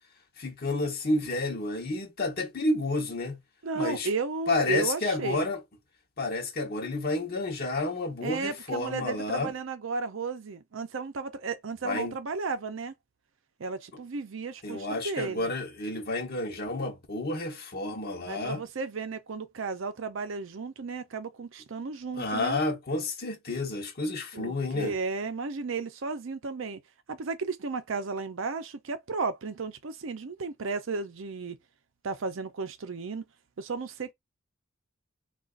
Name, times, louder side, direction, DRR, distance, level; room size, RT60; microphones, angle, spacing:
voice 1, 0.4-3.4 3.7-4.1 4.5-5.6 6.2-9.5 11.8-12.1 14.6-18.6 22.1-25.0, left 2 dB, 50° left, 1.0 m, -30 dB
voice 2, 3.6-5.5 8.2-12.9 13.6-15.5 18.3-22.6 24.3-26.8 27.1-31.6 32.0-33.2 33.6-34.1, right 4 dB, 70° right, 0.6 m, -34 dB
3.9 x 2.4 x 2.4 m
head